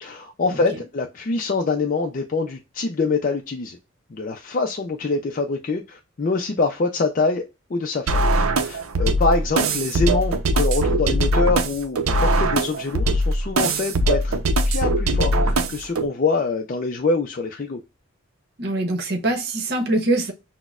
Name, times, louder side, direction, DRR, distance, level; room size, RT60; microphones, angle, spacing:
voice 1, 0.0-3.8 4.1-7.4 7.7-8.2 8.6-17.8, left 3 dB, 40° left, 0.4 m, -25 dB
sound 1, 8.1-16.1, right 1 dB, 85° right, 0.6 m, -21 dB
voice 2, 18.6-20.3, right 2 dB, 50° right, 0.9 m, -23 dB
6.0 x 2.1 x 2.3 m
head